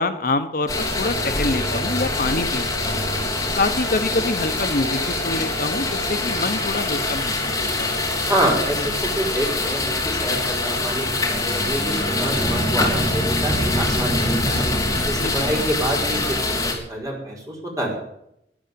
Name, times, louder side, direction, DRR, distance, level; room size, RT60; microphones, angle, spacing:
voice 1, 0.0-3.1 3.6-8.0 15.2-15.5, left 2 dB, 50° left, 9 dB, 0.8 m, -26 dB
sound 1, 0.7-16.7, left 2 dB, 20° left, 3.3 m, -24 dB
voice 2, 8.3-14.7 15.1-18.0, right 1 dB, 20° right, -2 dB, 4.8 m, -27 dB
12.5 x 10.5 x 9.4 m, 0.79 s
head